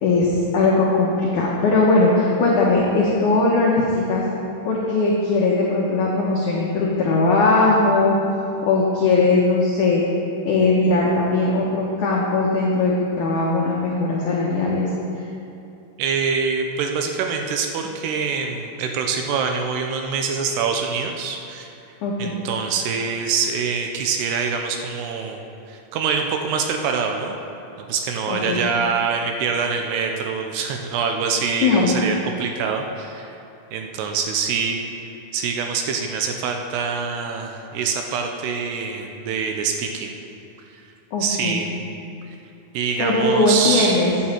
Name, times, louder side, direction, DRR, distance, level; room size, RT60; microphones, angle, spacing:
voice 1, 0.0-4.3 4.6-8.2 8.7-10.0 10.4-14.9 22.0-22.3 28.3-28.6 31.6-31.9 41.1-41.6 43.0-44.1, left 3 dB, 85° left, -4 dB, 1.7 m, -19 dB
voice 2, 16.0-21.7 22.2-27.4 27.8-33.3 33.7-34.8 35.3-40.2 40.7-40.8 41.2-41.7 42.7-44.1, right 5 dB, 80° right, 3 dB, 2.5 m, -25 dB
14.0 x 9.4 x 4.5 m, 2.7 s
omnidirectional pair, 5.4 m